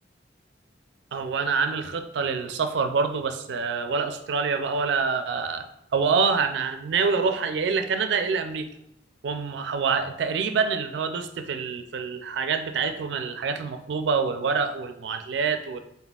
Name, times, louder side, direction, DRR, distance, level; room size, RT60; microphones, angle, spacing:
voice 1, 1.1-5.6 5.9-8.7 9.2-15.8, right 5 dB, 70° right, 8 dB, 0.4 m, -26 dB
4.1 x 3.6 x 2.3 m, 0.77 s
head